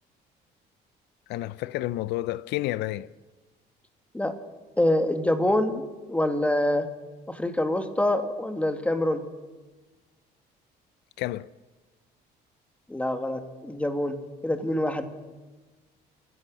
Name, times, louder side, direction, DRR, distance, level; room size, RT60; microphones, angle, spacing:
voice 1, 1.3-3.1 11.2-11.5, left 16 dB, 85° left, 0.6 m, -30 dB
voice 2, 4.8-6.9 7.3-9.2 12.9-15.0, left 1 dB, 10° left, 2.1 m, -26 dB
28.5 x 15.5 x 6.4 m
cardioid pair, 110°, 17 cm